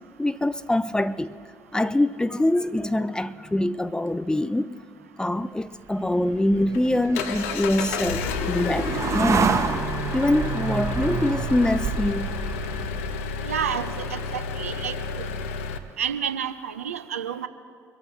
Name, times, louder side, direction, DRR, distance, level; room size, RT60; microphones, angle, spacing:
voice 1, 0.2-1.3 1.7-4.7 5.2-9.6 10.1-12.4, left 1 dB, 10° left, 0.5 m, -24 dB
sound 1, 5.9-13.3, right 5 dB, 40° right, 1.2 m, -29 dB
Engine, 6.3-15.8, left 5 dB, 75° left, 0.8 m, -31 dB
voice 2, 13.4-15.3 16.0-17.5, right 8 dB, 85° right, 0.6 m, -30 dB
24.5 x 14.0 x 3.2 m
figure-of-eight pair, 50°, 8 cm